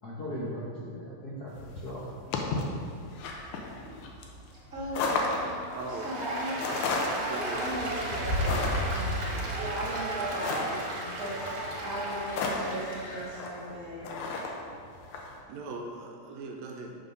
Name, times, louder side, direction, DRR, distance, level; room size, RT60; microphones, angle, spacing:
voice 1, 0.0-2.7, equal, 70° left, -7 dB, 0.9 m, -39 dB
sound 1, 1.6-15.3, left 2 dB, 90° left, 2.1 m, -33 dB
voice 2, 4.7-5.6 5.9-9.3 9.5-14.1, right 1 dB, 35° right, -8 dB, 1.7 m, -38 dB
voice 3, 5.7-6.3 7.2-7.9 15.5-16.9, right 3 dB, 80° right, 1 dB, 1.8 m, -40 dB
Applause, 5.9-13.4, right 2 dB, 60° right, 1.7 m, -36 dB
Trumpet, 6.3-12.5, equal, 45° left, 0.8 m, -48 dB
7.3 x 3.8 x 5.4 m, 2.3 s
omnidirectional pair, 3.3 m